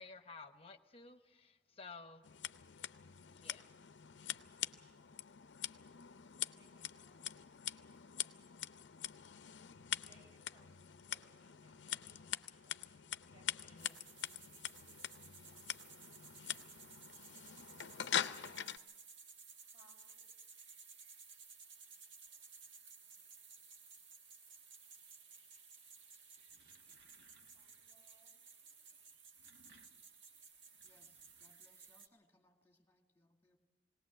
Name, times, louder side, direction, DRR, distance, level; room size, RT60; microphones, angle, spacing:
voice 1, 0.0-2.2 3.3-3.6 13.9-14.0, left 4 dB, 30° left, 8 dB, 1.0 m, -54 dB
Scissors, 2.2-18.8, left 10 dB, 70° left, 0.6 m, -44 dB
voice 2, 4.5-8.8 9.9-12.8 13.2-14.0 15.5-16.8 19.6-20.3 27.5-28.3, right 1 dB, 25° right, -1 dB, 6.5 m, -73 dB
sound 1, 13.8-32.1, right 5 dB, 85° right, 1.4 m, -58 dB
sound 2, 26.3-28.0 29.1-32.2, right 2 dB, 60° right, 1.5 m, -70 dB
voice 3, 30.8-33.6, left 1 dB, 15° left, 3 dB, 2.1 m, -72 dB
19.5 x 19.0 x 7.5 m, 1.3 s
head